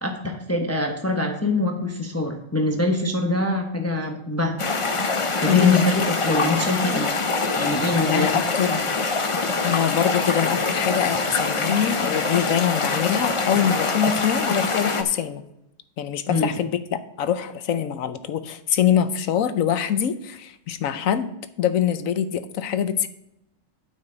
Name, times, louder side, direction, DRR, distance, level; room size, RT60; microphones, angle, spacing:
voice 1, 0.0-4.6 5.4-7.1 7.6-8.3 16.3-16.5, left 2 dB, 15° left, 3 dB, 0.9 m, -24 dB
sound 1, 4.6-15.0, left 3 dB, 35° left, 0.5 m, -24 dB
voice 2, 5.5-5.8 8.0-8.9 9.6-15.4 16.0-21.3 21.6-23.1, left 9 dB, 85° left, 11 dB, 1.2 m, -24 dB
9.1 x 8.4 x 3.9 m, 0.85 s
omnidirectional pair, 1.4 m